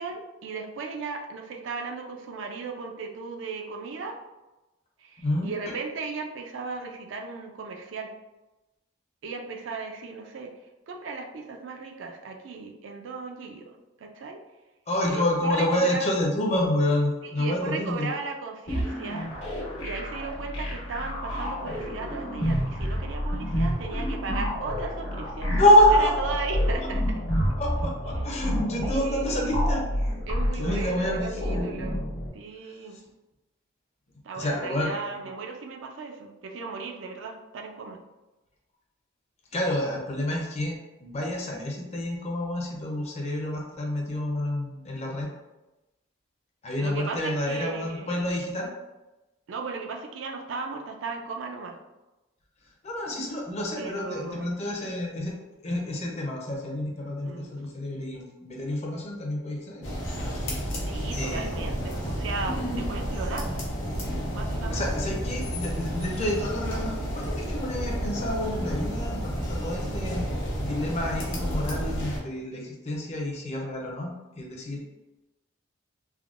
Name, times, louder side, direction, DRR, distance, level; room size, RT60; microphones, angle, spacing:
voice 1, 0.0-4.2 5.0-8.1 9.2-10.5 10.9-14.4 15.1-16.1 17.2-19.3 19.8-27.0 28.8-29.6 30.3-32.0 32.3-33.0 34.2-38.0 46.8-48.1 49.5-51.8 53.8-54.6 57.2-57.5 60.9-63.5 64.3-64.9 69.7-70.0 74.7-74.8, right 4 dB, 70° right, 2 dB, 0.4 m, -36 dB
voice 2, 5.2-5.7 14.9-18.1 25.4-26.4 27.6-30.2 30.6-31.7 32.9-33.0 34.3-34.9 39.5-45.3 46.6-48.7 52.8-55.3 55.6-59.9 60.2-60.7 61.2-61.6 64.7-70.2 70.5-74.8, left 1 dB, 35° left, -1 dB, 0.5 m, -28 dB
sound 1, 18.7-32.3, equal, 85° left, 1.2 m, -29 dB
sound 2, 59.8-72.2, equal, 65° left, 0.8 m, -31 dB
3.4 x 2.1 x 2.4 m, 1.0 s
head